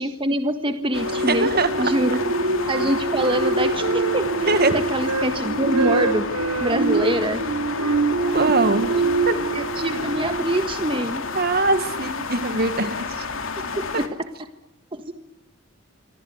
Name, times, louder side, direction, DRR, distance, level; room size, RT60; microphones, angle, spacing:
voice 1, 0.0-1.5 1.8-2.2 2.7-6.3 6.6-7.4 8.4-8.5 9.5-11.2 13.9-14.1 14.9-15.1, right 1 dB, 25° right, 8 dB, 1.6 m, -25 dB
sound 1, 0.9-14.1, left 4 dB, 65° left, 3.1 m, -31 dB
sound 2, 0.9-10.8 11.2-11.5, right 3 dB, 65° right, 6.8 m, -25 dB
Wind instrument woodwind instrument, 1.1-1.9 2.3-5.3 5.7-7.2 7.7-10.2, right 3 dB, 90° right, 1.2 m, -30 dB
voice 2, 1.3-1.7 4.5-4.8 8.3-8.9 9.3-9.4 11.3-13.3, right 2 dB, 45° right, 11 dB, 1.9 m, -21 dB
26.5 x 25.5 x 8.3 m, 0.85 s
head